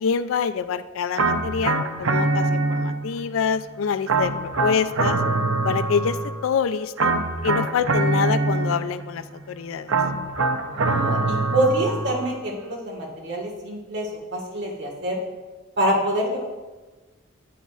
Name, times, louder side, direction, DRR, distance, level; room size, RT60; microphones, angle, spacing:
voice 1, 0.0-5.2 5.6-6.2 6.4-7.1 7.4-9.9, left 6 dB, 85° left, 13 dB, 0.4 m, -26 dB
sound 1, 1.2-3.2 4.1-6.5 7.0-9.1 9.9-12.3, right 3 dB, 90° right, 0.7 m, -24 dB
voice 2, 10.7-15.2 15.8-16.4, right 1 dB, 60° right, 0 dB, 1.7 m, -26 dB
9.3 x 8.1 x 2.5 m, 1.2 s
head